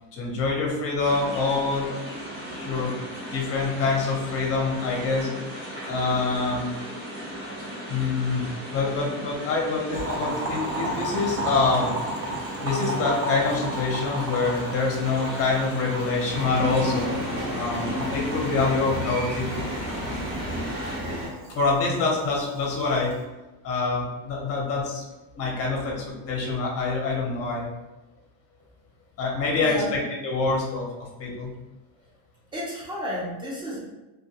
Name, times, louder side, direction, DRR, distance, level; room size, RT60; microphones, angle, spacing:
voice 1, 0.1-1.9 2.5-2.9 3.3-5.3 5.9-6.7 7.9-11.9 12.6-17.1 17.5-19.5 21.5-23.1 23.6-25.0 25.3-27.7 29.2-29.8 30.2-31.5, left 3 dB, 30° left, -1 dB, 0.6 m, -26 dB
sound 1, 1.0-21.0, right 1 dB, 65° right, 1.2 m, -37 dB
Boiling, 9.9-23.2, right 1 dB, 85° right, 0.8 m, -34 dB
sound 2, 16.3-21.3, equal, 45° right, 0.9 m, -31 dB
voice 2, 29.6-30.0 32.0-32.1 32.5-33.9, equal, 10° right, -5 dB, 0.5 m, -32 dB
2.2 x 2.2 x 2.7 m, 1.1 s
cardioid pair, 145°, 47 cm